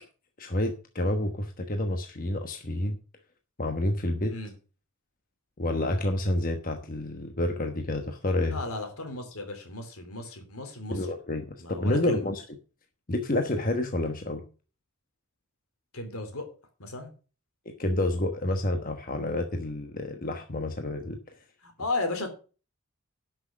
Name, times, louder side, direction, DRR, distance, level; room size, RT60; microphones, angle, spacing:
voice 1, 0.4-3.0 3.6-4.3 5.6-8.6 10.9-12.6 13.1-14.4 17.7-21.2, left 1 dB, 40° left, 5 dB, 1.1 m, -29 dB
voice 2, 8.5-11.0 11.6-12.2 15.9-16.4 16.8-17.1 21.6-22.3, left 2 dB, 75° left, 6 dB, 3.3 m, -35 dB
11.5 x 6.3 x 6.3 m, 0.36 s
head